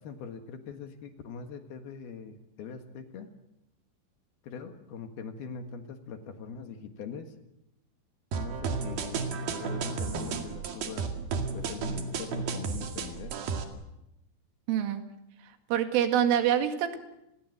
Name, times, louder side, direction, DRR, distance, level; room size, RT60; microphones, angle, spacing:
voice 1, 0.0-3.3 4.4-7.3 8.3-11.2 11.5-13.4, left 6 dB, 60° left, 6 dB, 3.1 m, -42 dB
sound 1, 8.3-13.6, right 5 dB, 60° right, 3.6 m, -33 dB
voice 2, 14.7-15.0 15.7-17.0, right 10 dB, 90° right, 6 dB, 4.6 m, -25 dB
29.5 x 20.5 x 7.8 m, 0.88 s
omnidirectional pair, 5.6 m